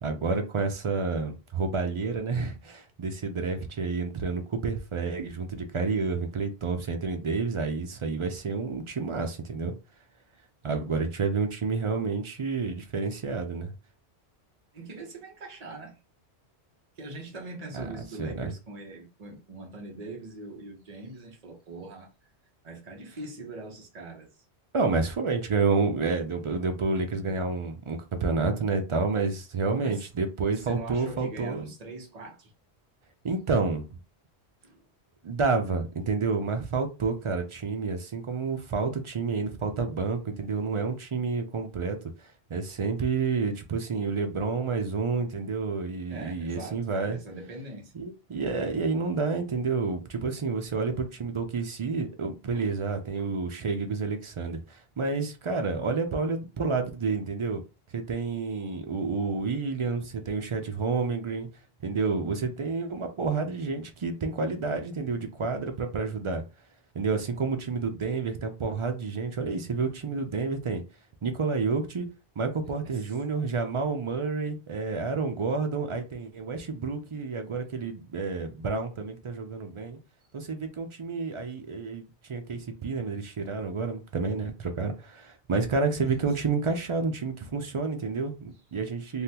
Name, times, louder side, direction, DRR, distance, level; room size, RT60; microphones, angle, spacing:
voice 1, 0.0-9.7 10.6-13.7 17.7-17.9 18.2-18.5 24.7-31.7 33.2-34.0 35.2-47.2 47.9-57.6 57.9-61.5 61.8-66.4 66.9-70.8 71.2-72.1 72.4-80.0 80.3-89.2, right 4 dB, 55° right, 0.3 m, -29 dB
voice 2, 14.7-16.0 17.0-22.1 22.6-24.3 29.7-30.1 30.6-32.5 34.6-34.8 46.1-47.9 52.5-52.9 72.8-73.0 85.6-85.9, right 2 dB, 40° right, 1.0 m, -42 dB
3.5 x 2.2 x 2.8 m
omnidirectional pair, 1.1 m